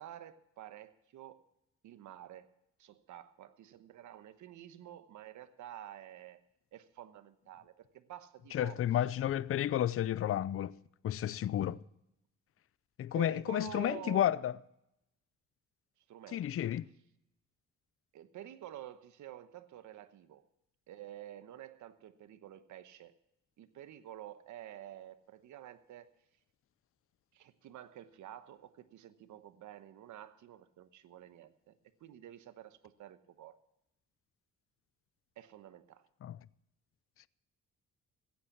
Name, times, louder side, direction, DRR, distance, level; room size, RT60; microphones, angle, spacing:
voice 1, 0.0-1.4 1.8-2.5 2.8-6.4 6.7-8.8 9.2-9.5 13.1-14.3 16.1-16.6 18.1-20.4 20.9-23.2 23.6-26.1 27.3-33.5 35.4-36.1, right 12 dB, 75° right, 1.1 m, -50 dB
voice 2, 8.5-10.8 11.0-11.8 13.0-14.5 16.3-16.9 36.2-36.4, left 11 dB, 50° left, 0.5 m, -31 dB
16.0 x 8.8 x 7.0 m
cardioid pair, 90°, 30 cm